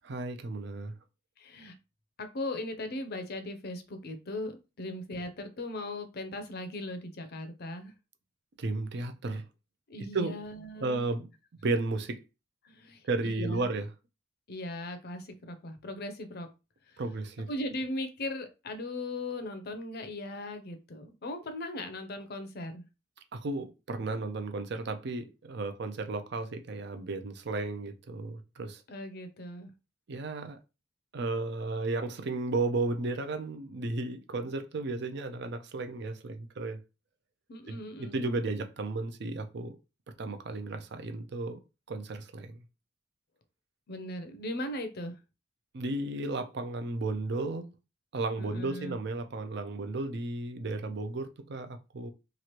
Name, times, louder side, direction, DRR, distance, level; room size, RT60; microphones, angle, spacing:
voice 1, 0.1-0.9 8.6-9.4 10.1-10.4 10.8-11.3 11.6-12.2 13.0-13.9 17.0-17.5 23.3-28.8 30.1-30.6 31.1-36.8 37.7-39.8 40.2-41.6 41.9-42.5 45.7-47.7 48.1-52.1, right 2 dB, 60° right, 0.5 m, -34 dB
voice 2, 1.4-1.7 2.2-7.9 9.9-11.0 12.6-13.7 14.5-16.5 16.9-17.0 17.5-22.8 28.9-29.7 37.5-38.4 43.9-45.2 48.4-49.0, left 1 dB, 55° left, 0.6 m, -38 dB
3.0 x 2.5 x 2.9 m
head